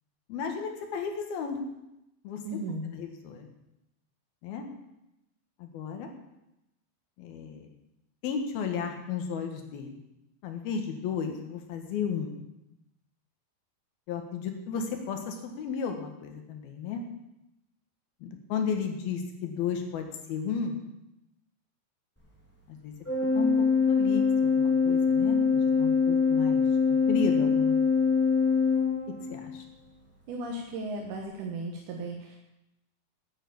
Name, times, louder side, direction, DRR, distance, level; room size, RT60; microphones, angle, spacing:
voice 1, 0.3-1.6 2.2-2.4 2.9-3.5 4.4-4.7 5.6-6.1 7.2-7.7 8.2-10.0 10.4-12.3 14.1-17.0 18.2-20.8 22.7-22.9 23.3-23.5 23.9-27.8 29.3-29.7, left 6 dB, 75° left, 4 dB, 3.3 m, -34 dB
voice 2, 2.5-2.9 30.3-32.4, right 2 dB, 65° right, 0 dB, 2.4 m, -35 dB
Organ, 23.1-29.6, left 5 dB, 5° left, 3.5 m, -24 dB
9.9 x 9.2 x 8.6 m, 0.90 s
omnidirectional pair, 4.5 m